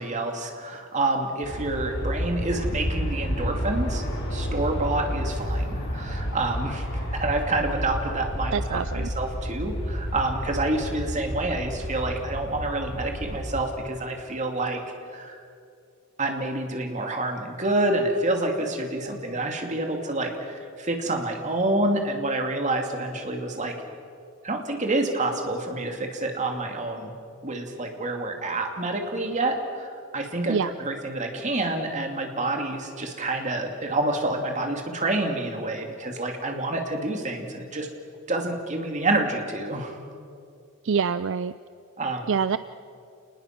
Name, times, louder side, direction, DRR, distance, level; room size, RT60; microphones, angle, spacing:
voice 1, 0.0-4.0 4.3-6.9 7.1-14.8 15.1-15.4 16.2-23.7 24.4-27.1 27.4-29.9 30.1-37.9 38.3-40.0 42.0-42.3, right 2 dB, 35° right, 3 dB, 2.6 m, -28 dB
Aircraft, 1.4-13.6, equal, 60° left, 7.3 m, -30 dB
voice 2, 8.5-9.1 30.5-30.7 40.8-41.5 42.3-42.6, right 6 dB, 65° right, 14 dB, 0.4 m, -25 dB
28.5 x 20.0 x 6.1 m, 2.4 s
head